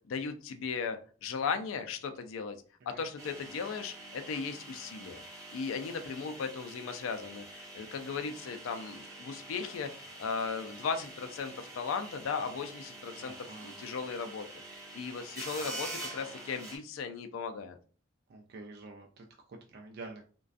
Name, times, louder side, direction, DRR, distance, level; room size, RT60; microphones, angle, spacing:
voice 1, 0.1-2.6 2.9-5.2 5.5-13.3 13.6-14.5 14.7-17.8, left 5 dB, 85° left, 7 dB, 0.4 m, -37 dB
sound 1, 3.2-16.8, right 2 dB, 15° right, 0.7 m, -46 dB
voice 2, 13.1-13.8 18.3-20.3, right 3 dB, 50° right, 1 dB, 0.3 m, -48 dB
2.4 x 2.2 x 2.4 m, 0.40 s
head